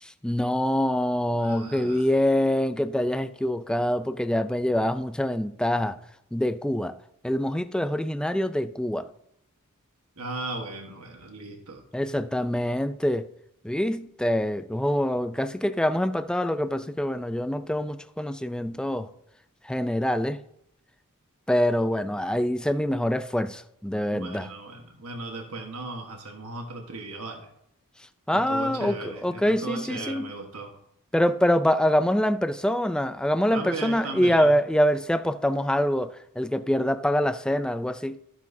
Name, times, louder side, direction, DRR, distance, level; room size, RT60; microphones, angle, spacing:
voice 1, 0.0-6.0 6.3-7.0 7.2-9.1 11.9-13.3 13.6-19.1 19.6-20.4 21.5-24.5 28.3-30.3 31.1-38.2, equal, 5° left, 0.3 m, -25 dB
voice 2, 1.4-2.1 10.2-11.8 24.1-27.5 28.3-30.8 33.5-34.5, right 3 dB, 90° right, 1.4 m, -36 dB
14.0 x 7.2 x 2.7 m
head